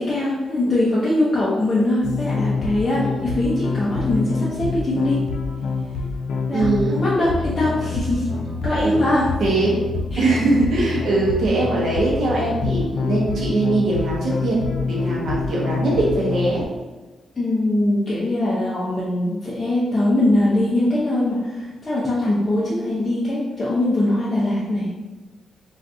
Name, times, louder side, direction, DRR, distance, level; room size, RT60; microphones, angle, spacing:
voice 1, 0.0-5.2 6.5-8.3 8.6-9.3 10.1-10.2 17.3-24.9, left 1 dB, 25° left, -8 dB, 0.6 m, -21 dB
sound 1, 2.0-16.6, left 4 dB, 85° left, 0.4 m, -26 dB
voice 2, 6.5-7.0 8.8-9.0 9.4-9.7 10.1-14.6 14.9-16.6, right 2 dB, 65° right, -4 dB, 0.7 m, -21 dB
2.6 x 2.3 x 3.5 m, 1.2 s
wide cardioid pair, 140°, 0 cm